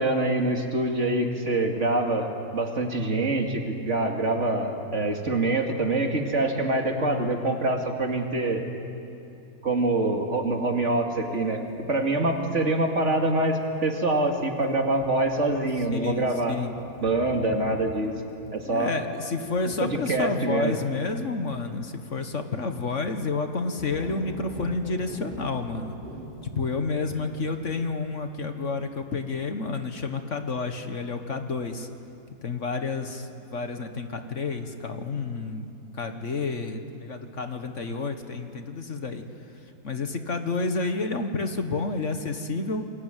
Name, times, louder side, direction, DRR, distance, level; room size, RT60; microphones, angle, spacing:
voice 1, 0.0-2.3 2.5-8.6 9.6-16.6 17.0-18.1 18.5-18.9 19.8-20.8, right 2 dB, 50° right, 2 dB, 2.7 m, -25 dB
sound 1, 11.2-12.8 13.1-13.7 14.0-14.2 14.5-14.6 15.0-22.7 23.1-27.8, right 1 dB, 30° right, 3.9 m, -44 dB
voice 2, 15.9-16.7 18.7-26.0 26.6-31.9 32.4-39.2 39.8-42.9, left 3 dB, 55° left, 7 dB, 1.7 m, -30 dB
28.5 x 22.5 x 9.2 m, 2.6 s
omnidirectional pair, 1.6 m